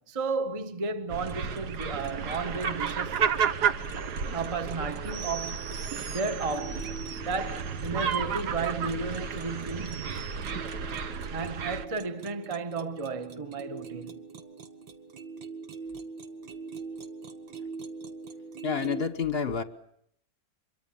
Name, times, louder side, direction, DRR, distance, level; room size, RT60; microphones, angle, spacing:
voice 1, 0.0-3.2 4.3-5.7 6.1-6.9 7.2-10.0 11.3-14.3, right 4 dB, 20° right, 1.0 m, -33 dB
sound 1, 1.1-11.9, right 6 dB, 60° right, 1.6 m, -32 dB
sound 2, 1.2-19.0, right 4 dB, 80° right, 2.3 m, -44 dB
voice 2, 18.6-19.6, left 6 dB, 35° left, 1.3 m, -29 dB
25.5 x 23.0 x 7.2 m
omnidirectional pair, 2.1 m